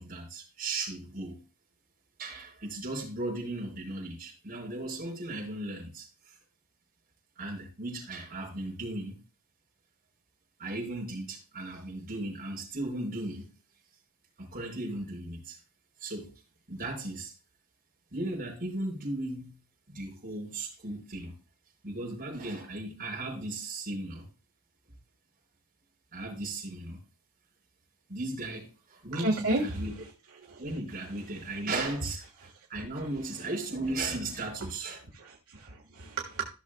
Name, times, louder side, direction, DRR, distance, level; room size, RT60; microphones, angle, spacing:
voice 1, 0.0-1.4 2.2-6.4 7.4-9.2 10.6-13.5 14.4-15.6 16.0-16.3 16.7-17.3 18.1-19.5 19.9-21.3 21.8-24.3 26.1-27.0 28.1-30.0 30.6-35.0, right 2 dB, 40° right, 4.8 m, -36 dB
voice 2, 29.1-29.8 30.4-30.6 35.1-36.5, right 2 dB, 75° right, 1.6 m, -32 dB
15.0 x 6.5 x 2.3 m
head